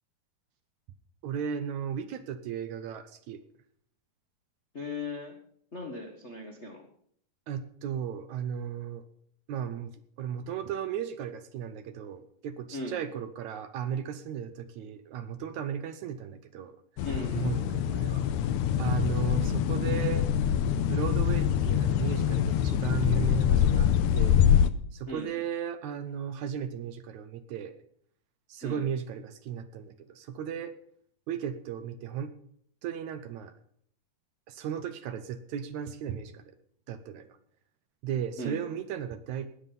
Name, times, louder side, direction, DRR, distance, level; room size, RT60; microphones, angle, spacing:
voice 1, 1.2-3.4 7.5-9.0 9.5-16.8 17.2-18.3 18.8-20.3 20.8-24.5 24.9-27.8 28.5-30.8 31.3-32.3 32.8-33.5 34.5-36.5 36.9-37.4 38.0-39.5, right 8 dB, 70° right, 10 dB, 2.0 m, -35 dB
voice 2, 4.7-5.4 5.7-6.9 12.7-13.0 17.0-17.6 25.1-25.3 28.6-28.8 38.4-38.6, left 2 dB, 60° left, 2 dB, 0.7 m, -38 dB
sound 1, 17.0-24.7, left 9 dB, 80° left, 2.1 m, -25 dB
19.0 x 7.3 x 5.5 m, 0.63 s
omnidirectional pair, 3.8 m